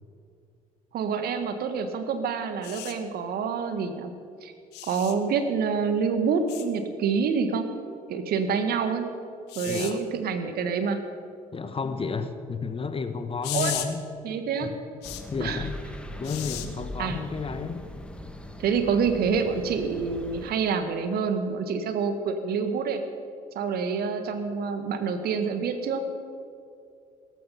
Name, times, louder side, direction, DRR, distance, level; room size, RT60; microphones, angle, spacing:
voice 1, 0.9-4.1 4.4-4.5 4.8-7.7 8.1-9.1 9.5-11.0 13.5-13.7 14.2-14.7 15.4-15.7 17.0-17.2 18.6-23.0 23.5-26.0, right 5 dB, 55° right, 8 dB, 1.6 m, -27 dB
sound 1, 2.6-2.9 4.7-5.1 6.5-6.7 9.5-9.9 13.4-13.9 15.0-15.2 16.2-16.7 18.1-18.3, left 13 dB, 65° left, 1.3 m, -35 dB
voice 2, 9.7-10.0 11.5-14.0 14.6-14.8 15.3-15.8 16.2-17.8, left 5 dB, 30° left, 10 dB, 1.4 m, -32 dB
sound 2, 15.0-20.5, left 1 dB, 5° left, 1.7 m, -40 dB
17.5 x 14.5 x 5.5 m, 2.4 s
figure-of-eight pair, 50°, 19 cm